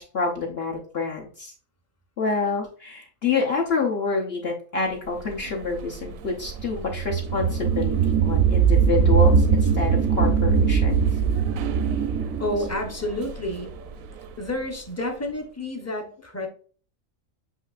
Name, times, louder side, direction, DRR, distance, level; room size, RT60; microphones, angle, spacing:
voice 1, 0.0-1.5 2.2-11.0 12.6-12.7, left 4 dB, 55° left, -1 dB, 1.0 m, -27 dB
sound 1, 5.3-14.2, right 6 dB, 80° right, 1.0 m, -21 dB
voice 2, 12.4-13.7 14.4-16.5, left 1 dB, 15° left, 2 dB, 0.5 m, -30 dB
8.1 x 2.7 x 2.4 m, 0.42 s
omnidirectional pair, 1.4 m